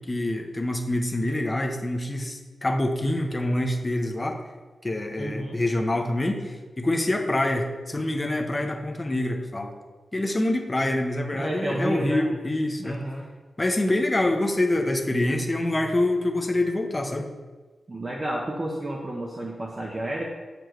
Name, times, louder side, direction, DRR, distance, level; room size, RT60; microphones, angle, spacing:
voice 1, 0.1-4.4 4.8-9.7 10.1-13.0 13.6-17.3, left 1 dB, 20° left, 3 dB, 0.7 m, -26 dB
voice 2, 5.2-5.6 11.3-12.3 12.8-13.3 17.9-20.2, right 1 dB, 25° right, -1 dB, 0.7 m, -31 dB
7.8 x 6.7 x 3.0 m, 1.3 s
wide cardioid pair, 170°, 0 cm